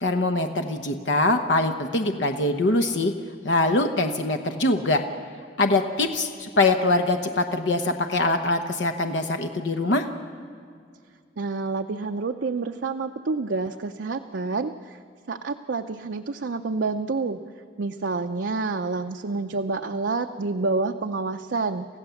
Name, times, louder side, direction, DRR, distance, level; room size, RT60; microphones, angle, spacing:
voice 1, 0.0-3.1 3.4-5.0 5.6-10.1, left 2 dB, 80° left, 5 dB, 1.0 m, -23 dB
voice 2, 11.4-15.0 15.3-17.4 17.8-21.9, right 3 dB, 80° right, 5 dB, 0.6 m, -28 dB
28.5 x 15.5 x 7.1 m, 2.2 s
head